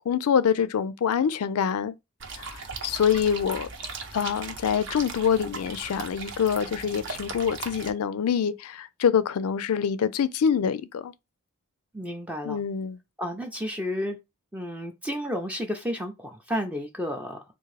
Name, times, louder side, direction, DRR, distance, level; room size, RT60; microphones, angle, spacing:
voice 1, 0.1-1.9 2.4-2.6 2.8-3.7 4.1-11.1 12.4-13.0, left 7 dB, 80° left, 0.4 m, -25 dB
sound 1, 2.2-7.9, right 4 dB, 55° right, 0.8 m, -38 dB
voice 2, 11.9-12.6 13.2-14.2 14.5-17.4, equal, 5° right, 0.4 m, -31 dB
3.6 x 2.5 x 3.2 m
head